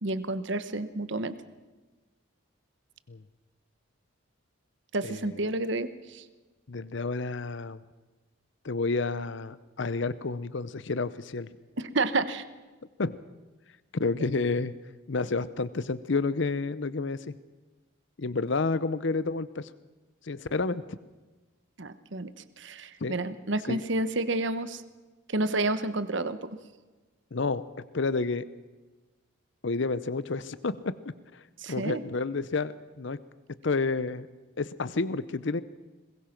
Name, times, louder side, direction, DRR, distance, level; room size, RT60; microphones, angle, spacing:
voice 1, 0.0-1.3 4.9-6.2 11.8-12.4 21.8-22.3 22.6-24.8 25.3-26.6 31.6-32.0, right 2 dB, 60° right, 13 dB, 1.1 m, -30 dB
voice 2, 5.0-5.3 6.7-7.8 8.6-11.5 13.0-13.2 13.9-14.7 15.1-17.3 18.2-19.7 20.2-20.8 23.0-23.1 23.7-23.8 27.3-27.7 27.9-28.4 29.6-31.4 31.7-33.2 33.6-34.3 34.6-35.6, left 3 dB, 60° left, 16 dB, 0.7 m, -30 dB
21.5 x 21.0 x 5.9 m, 1.2 s
head